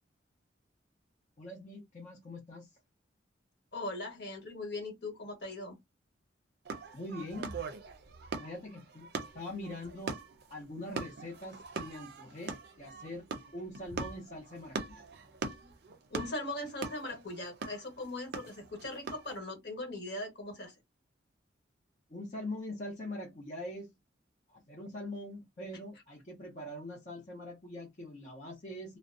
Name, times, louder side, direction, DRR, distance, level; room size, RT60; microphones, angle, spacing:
voice 1, 1.4-2.7 6.9-7.5 8.4-10.2 10.5-13.2 13.5-15.0 22.1-23.9 24.5-29.0, left 1 dB, 40° left, 0.7 m, -43 dB
voice 2, 3.7-5.8 16.1-20.7, left 2 dB, 60° left, 1.2 m, -40 dB
sound 1, 6.6-19.4, right 4 dB, 55° right, 0.5 m, -42 dB
2.5 x 2.1 x 2.4 m
head